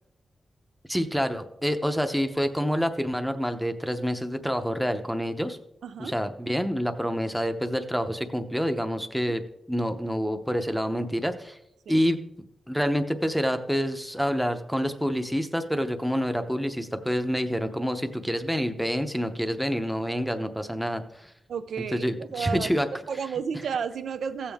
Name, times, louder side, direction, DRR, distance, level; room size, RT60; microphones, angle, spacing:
voice 1, 0.9-5.6 6.0-9.4 9.7-11.6 11.9-12.2 12.7-21.3 21.9-22.9, equal, ahead, 8 dB, 0.7 m, -27 dB
voice 2, 5.8-6.2 11.9-12.0 21.5-22.7 23.1-24.5, right 6 dB, 90° right, 11 dB, 0.5 m, -32 dB
16.0 x 7.2 x 3.5 m, 0.79 s
wide cardioid pair, 170°, 0 cm